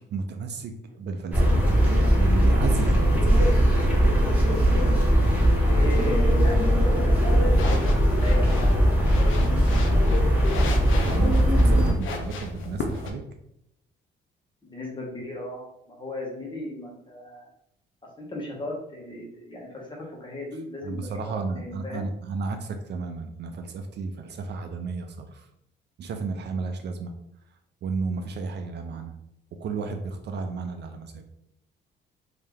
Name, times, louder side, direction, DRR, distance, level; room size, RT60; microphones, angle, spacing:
voice 1, 0.1-4.0 11.0-13.2 20.8-25.5 26.0-27.1 27.8-29.1 29.6-31.2, right 4 dB, 60° right, 6 dB, 0.5 m, -33 dB
sound 1, 1.3-11.9, equal, 10° right, 1.5 m, -20 dB
voice 2, 5.7-8.7 9.1-10.0 14.6-17.5 18.2-22.1, left 1 dB, 25° left, -2 dB, 1.4 m, -37 dB
sound 2, 7.4-13.1, left 3 dB, 85° left, 0.7 m, -35 dB
3.2 x 2.9 x 3.5 m, 0.77 s
cardioid pair, 90°, 20 cm